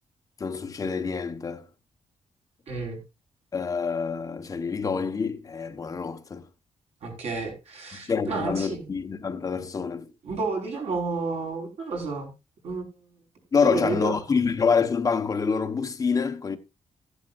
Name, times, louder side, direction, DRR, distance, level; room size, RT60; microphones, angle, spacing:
voice 1, 0.4-1.6 3.5-6.4 7.9-10.1 13.5-16.6, left 5 dB, 30° left, 1.1 m, -26 dB
voice 2, 2.7-3.0 7.0-8.9 10.2-12.3 12.6-12.8 13.6-14.2, right 3 dB, 60° right, 5.1 m, -31 dB
14.5 x 11.5 x 2.5 m
wide cardioid pair, 170°, 12 cm